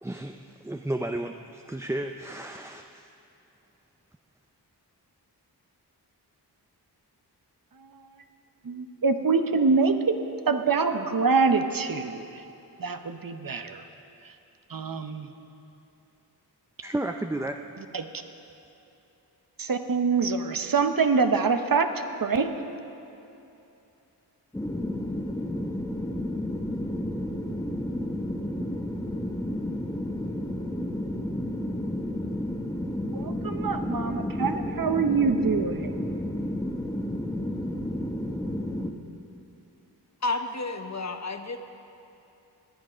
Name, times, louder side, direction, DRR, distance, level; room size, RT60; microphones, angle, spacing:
voice 1, 0.0-3.0 16.8-17.6, right 1 dB, 5° right, 4 dB, 0.5 m, -33 dB
voice 2, 7.8-8.2 8.6-10.2 10.5-12.4 12.8-13.8 14.7-15.3 17.9-18.1 19.6-22.5 33.1-36.1, right 4 dB, 55° right, 7 dB, 0.9 m, -25 dB
sound 1, 24.5-38.9, left 1 dB, 10° left, 1.0 m, -31 dB
voice 3, 40.2-41.6, left 2 dB, 40° left, 7 dB, 0.9 m, -31 dB
21.5 x 7.6 x 5.1 m, 2.8 s
cardioid pair, 45°, 41 cm